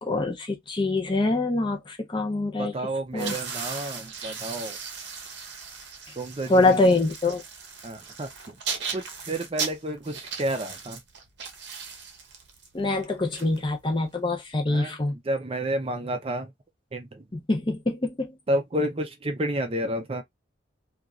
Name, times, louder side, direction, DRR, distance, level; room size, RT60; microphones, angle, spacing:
voice 1, 0.0-2.7 3.1-3.4 6.5-7.4 12.7-15.2 17.3-18.4, left 2 dB, 25° left, 0.6 m, -24 dB
voice 2, 2.6-4.8 6.2-6.9 7.8-8.3 8.9-11.0 14.7-14.9 15.3-16.5 16.9-17.2 18.5-20.2, right 1 dB, 30° right, 0.5 m, -30 dB
sound 1, 3.1-14.1, right 6 dB, 60° right, 0.7 m, -37 dB
2.9 x 2.3 x 2.4 m
head